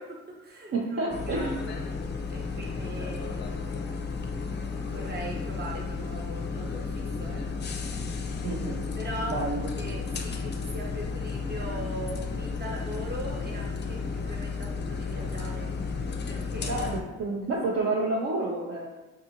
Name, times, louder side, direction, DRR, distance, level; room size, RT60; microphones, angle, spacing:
voice 1, 0.0-1.8 2.3-4.1 4.9-7.7 9.0-9.4 9.8-15.7 16.3-16.9 17.2-17.4, right 1 dB, 35° right, -1 dB, 1.0 m, -40 dB
voice 2, 0.7-1.5 8.4-8.9 9.2-9.7 16.7-18.9, right 2 dB, 55° right, -3 dB, 0.7 m, -29 dB
sound 1, 1.1-17.0, left 4 dB, 35° left, 0.5 m, -33 dB
4.8 x 2.5 x 2.8 m, 1.1 s
cardioid pair, 90°, 30 cm